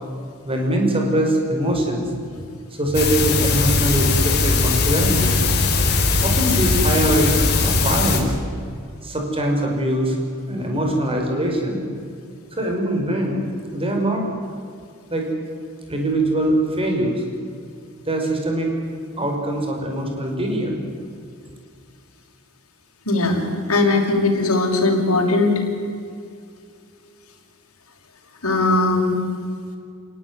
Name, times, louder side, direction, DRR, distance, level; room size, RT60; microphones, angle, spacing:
voice 1, 0.5-2.1 2.7-5.4 6.2-8.3 9.0-10.2 10.5-11.8 12.5-13.4 13.7-14.2 15.1-15.3 15.9-17.2 18.1-18.7 19.2-20.8, right 1 dB, 25° right, 2 dB, 5.5 m, -22 dB
sound 1, 2.9-8.2, left 3 dB, 50° left, 4.8 m, -19 dB
voice 2, 23.0-23.4 23.7-25.6 28.4-29.2, left 2 dB, 75° left, -1 dB, 5.9 m, -19 dB
29.0 x 18.5 x 9.8 m, 2.3 s
head